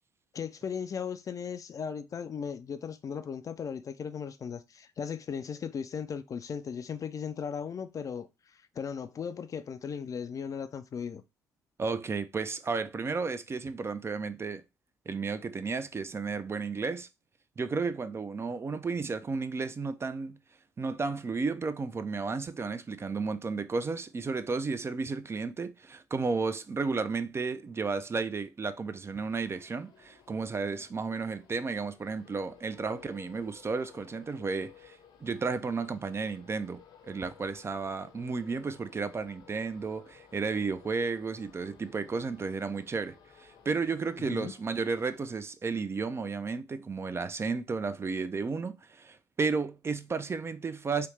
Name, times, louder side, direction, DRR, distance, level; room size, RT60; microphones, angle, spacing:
voice 1, 0.3-11.2 44.3-44.5, left 7 dB, 40° left, 0.4 m, -37 dB
voice 2, 11.8-14.6 15.1-17.1 17.6-20.4 20.8-51.1, right 4 dB, 30° right, 0.4 m, -33 dB
sound 1, 29.1-45.4, left 8 dB, 60° left, 0.8 m, -58 dB
3.3 x 2.7 x 3.1 m
hypercardioid pair, 50°, 9 cm